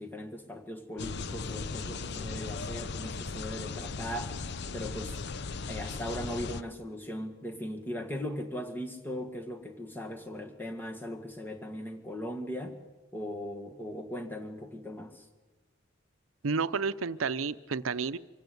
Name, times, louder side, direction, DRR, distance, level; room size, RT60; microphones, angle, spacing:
voice 1, 0.0-4.4 4.7-5.2 5.7-12.8 13.1-15.3, equal, 10° left, 4 dB, 2.0 m, -39 dB
sound 1, 1.0-6.6, left 4 dB, 55° left, 0.7 m, -37 dB
voice 2, 16.4-18.2, right 5 dB, 90° right, 15 dB, 0.7 m, -31 dB
25.0 x 16.0 x 8.0 m, 1.2 s
head